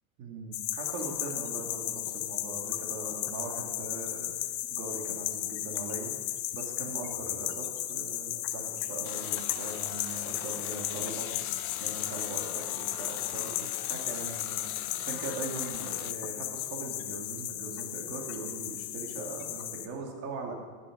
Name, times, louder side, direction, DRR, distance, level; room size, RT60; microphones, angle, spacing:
voice 1, 0.2-6.2 6.5-11.5 11.8-20.5, right 3 dB, 40° right, 0 dB, 2.5 m, -40 dB
sound 1, 0.5-19.9, left 14 dB, 55° left, 0.9 m, -35 dB
sound 2, 9.0-16.1, left 15 dB, 85° left, 0.7 m, -42 dB
11.0 x 9.6 x 5.2 m, 1.5 s
supercardioid pair, 150°, 42 cm